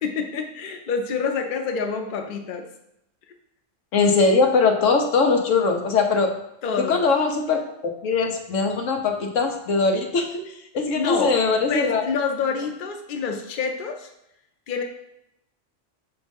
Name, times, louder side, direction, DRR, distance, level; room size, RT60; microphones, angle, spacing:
voice 1, 0.0-2.7 6.6-7.0 10.9-11.3 11.7-14.1 14.7-14.8, left 5 dB, 50° left, 4 dB, 0.7 m, -27 dB
voice 2, 3.9-6.3 6.9-7.6 8.0-12.0, left 4 dB, 90° left, 4 dB, 1.2 m, -21 dB
6.2 x 3.0 x 5.1 m, 0.83 s
omnidirectional pair, 1.3 m